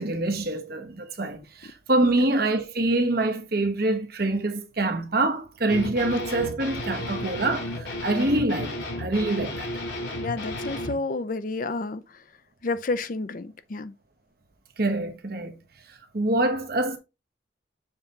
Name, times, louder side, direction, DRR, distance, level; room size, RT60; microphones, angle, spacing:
voice 1, 0.0-9.7 14.8-15.5 16.1-17.0, right 2 dB, 55° right, 1.1 m, -25 dB
sound 1, 5.7-10.9, left 1 dB, 75° left, 2.1 m, -33 dB
voice 2, 10.2-12.2 12.6-13.9, left 3 dB, 45° left, 0.5 m, -30 dB
7.2 x 3.4 x 3.8 m
head